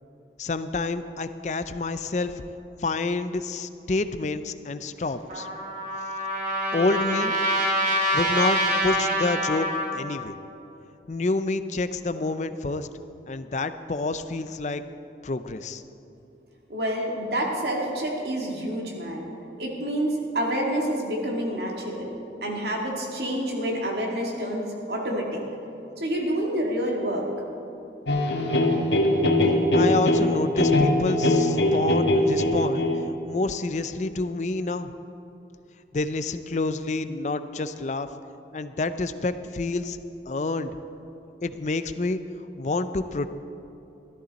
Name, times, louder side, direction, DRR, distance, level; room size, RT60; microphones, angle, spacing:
voice 1, 0.4-2.4 2.8-5.5 6.7-7.3 8.1-10.3 11.1-12.9 13.3-14.8 15.2-15.8 29.7-32.9 33.3-34.9 35.9-38.1 38.5-40.0 40.3-40.7 41.4-42.2 42.6-43.3, left 3 dB, 40° left, 11 dB, 0.5 m, -28 dB
Trumpet, 5.3-10.0, equal, 45° right, 2.0 m, -25 dB
voice 2, 16.7-19.3 19.6-22.1 22.4-25.4 26.0-27.3, right 1 dB, 70° right, -1 dB, 2.1 m, -28 dB
sound 1, 28.1-33.1, left 1 dB, 90° left, 1.3 m, -21 dB
14.5 x 13.0 x 4.1 m, 2.9 s
head